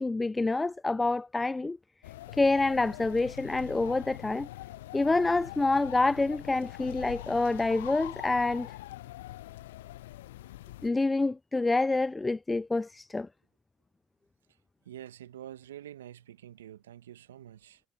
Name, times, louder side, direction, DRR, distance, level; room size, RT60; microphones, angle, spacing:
voice 1, 0.0-1.8 2.3-4.5 4.9-8.7 10.8-13.3, left 3 dB, 20° left, 0.7 m, -27 dB
sound 1, 2.0-10.9, left 16 dB, 80° left, 0.3 m, -44 dB
voice 2, 14.8-17.8, right 11 dB, 85° right, 1.5 m, -47 dB
hypercardioid pair, 50°, 0 cm